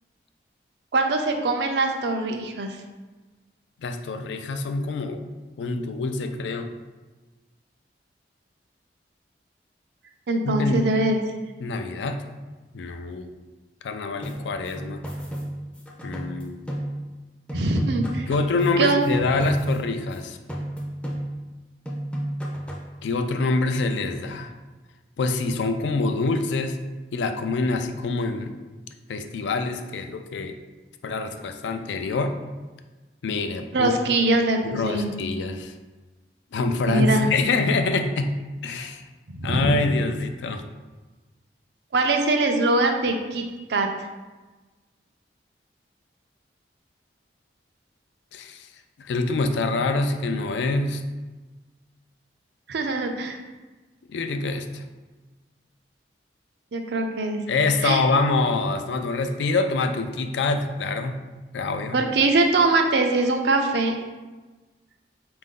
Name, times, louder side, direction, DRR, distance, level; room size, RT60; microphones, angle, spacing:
voice 1, 0.9-2.8 10.3-11.2 17.5-18.3 18.8-19.0 33.7-35.1 36.9-37.3 39.3-39.8 41.9-43.4 43.7-43.9 52.7-53.4 56.7-57.4 57.8-58.0 61.9-64.0, right 2 dB, 70° right, 4 dB, 0.5 m, -22 dB
voice 2, 3.8-5.2 5.6-6.7 10.4-10.9 11.6-12.3 12.7-13.3 13.8-15.0 16.0-16.6 18.3-20.4 23.0-24.5 25.2-26.8 27.1-28.6 29.1-30.6 31.0-32.4 33.2-33.9 34.6-35.7 36.5-38.3 38.6-39.0 39.4-40.6 48.3-48.7 49.0-51.0 54.1-54.9 57.5-61.1 61.5-62.0, left 3 dB, 85° left, 7 dB, 0.4 m, -25 dB
sound 1, 14.2-17.2 17.5-20.2 20.5-21.6 21.9-22.9, right 1 dB, 5° left, 0.4 m, -33 dB
4.3 x 2.5 x 3.7 m, 1.2 s
head